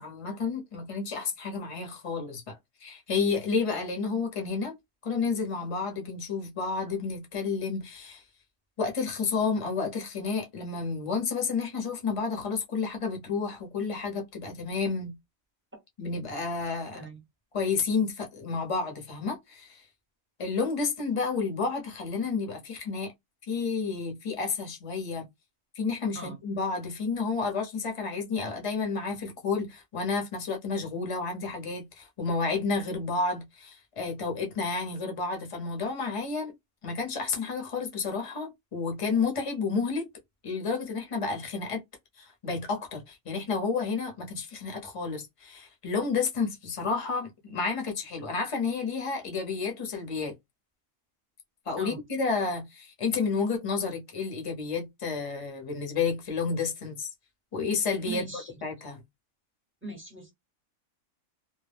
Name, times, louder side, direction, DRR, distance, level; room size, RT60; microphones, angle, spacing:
voice 1, 0.0-4.8 5.0-8.2 8.8-15.1 16.0-17.0 17.5-19.8 20.4-23.1 23.5-25.3 25.7-36.5 36.8-40.1 40.4-41.8 42.2-50.4 51.7-57.1 57.5-59.0, left 4 dB, 35° left, 0.6 m, -31 dB
voice 2, 58.1-58.5 59.8-60.3, right 3 dB, 10° right, 0.7 m, -39 dB
2.2 x 2.1 x 3.3 m
omnidirectional pair, 1.4 m